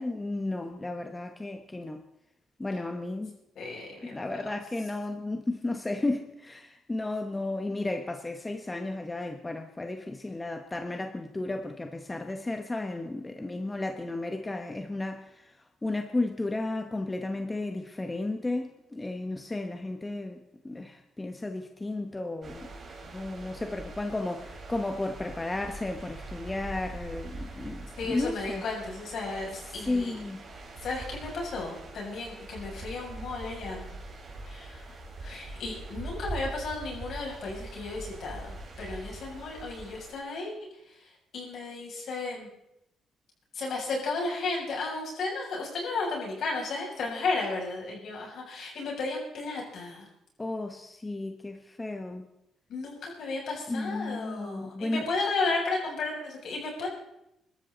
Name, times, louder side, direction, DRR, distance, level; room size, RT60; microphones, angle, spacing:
voice 1, 0.0-2.0 2.6-3.4 4.0-15.5 15.8-22.7 23.1-28.6 29.7-30.4 50.4-52.3 53.7-55.1, left 2 dB, 15° left, 6 dB, 1.2 m, -33 dB
voice 2, 3.6-4.2 28.0-30.1 30.8-33.8 34.5-34.8 35.2-40.5 41.3-42.5 43.5-50.1 52.7-56.9, left 3 dB, 65° left, -1 dB, 7.1 m, -34 dB
sound 1, 22.4-40.2, right 2 dB, 40° right, 4.5 m, -43 dB
24.5 x 13.0 x 4.0 m, 0.84 s
cardioid pair, 90°, 0 cm